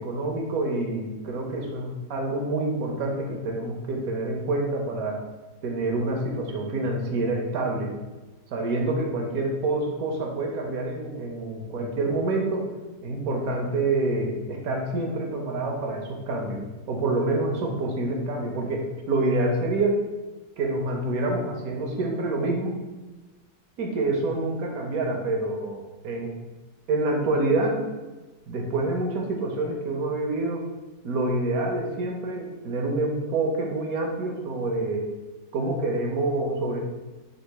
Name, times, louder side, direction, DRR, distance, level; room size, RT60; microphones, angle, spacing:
voice 1, 0.0-5.2 5.6-7.9 8.5-12.7 13.0-16.6 16.9-20.0 20.6-22.7 23.8-26.3 26.9-27.8 28.5-30.6 31.0-35.1 35.5-36.8, right 2 dB, 65° right, 1 dB, 1.0 m, -27 dB
3.9 x 2.4 x 4.6 m, 1.2 s
omnidirectional pair, 1.9 m